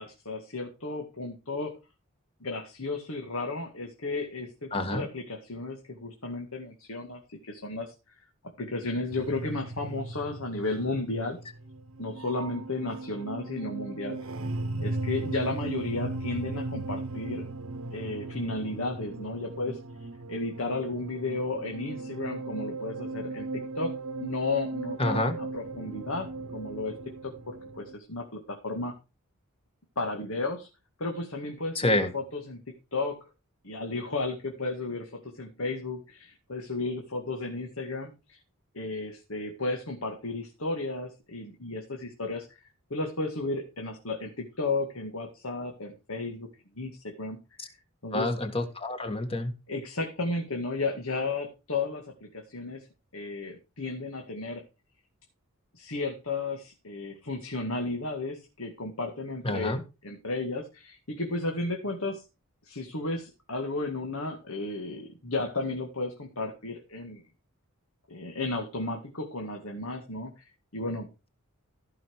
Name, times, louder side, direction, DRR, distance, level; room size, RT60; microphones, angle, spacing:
voice 1, 0.0-1.7 2.4-7.9 8.6-11.4 12.0-14.2 14.8-17.5 17.9-23.9 24.2-26.9 27.2-28.9 30.0-30.7 31.0-32.6 32.9-33.2 33.6-38.4 38.7-42.6 42.9-46.5 46.8-47.4 48.0-48.3 49.7-52.9 53.1-54.6 55.7-59.7 60.0-62.2 62.7-67.2 68.1-71.3, left 2 dB, 70° left, 3 dB, 2.1 m, -33 dB
voice 2, 4.7-5.0 25.0-25.3 31.7-32.1 47.6-47.7 48.1-49.5 59.4-59.8, left 1 dB, 25° left, 8 dB, 1.7 m, -28 dB
sound 1, 9.1-27.9, right 2 dB, 70° right, 1.0 m, -37 dB
15.0 x 5.9 x 4.8 m, 0.29 s
head